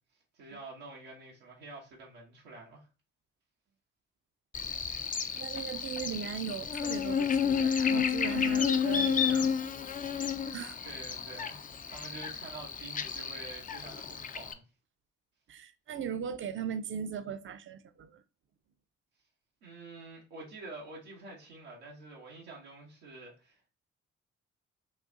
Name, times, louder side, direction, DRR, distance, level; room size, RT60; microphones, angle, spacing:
voice 1, 0.3-2.9 10.8-14.6 19.6-23.7, right 3 dB, 90° right, 0.8 m, -48 dB
Buzz, 4.5-14.5, left 7 dB, 25° left, 0.3 m, -31 dB
voice 2, 5.4-9.5 10.5-10.8 15.5-18.2, right 7 dB, 40° right, 0.5 m, -38 dB
3.9 x 2.3 x 2.5 m
hypercardioid pair, 40°, 33 cm